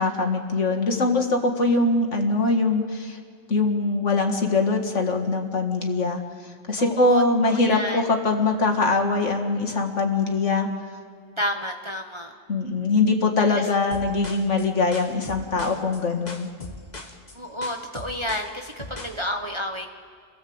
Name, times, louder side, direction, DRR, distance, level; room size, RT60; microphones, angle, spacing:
voice 1, 0.0-3.2 3.5-10.7 12.5-16.5, left 3 dB, 60° left, 3 dB, 2.2 m, -22 dB
voice 2, 6.8-8.1 11.4-12.3 13.5-13.7 17.3-19.9, equal, 25° right, 3 dB, 1.1 m, -31 dB
sound 1, 13.9-19.2, left 2 dB, 30° left, 1.7 m, -40 dB
29.0 x 17.5 x 7.9 m, 2.1 s
omnidirectional pair, 1.4 m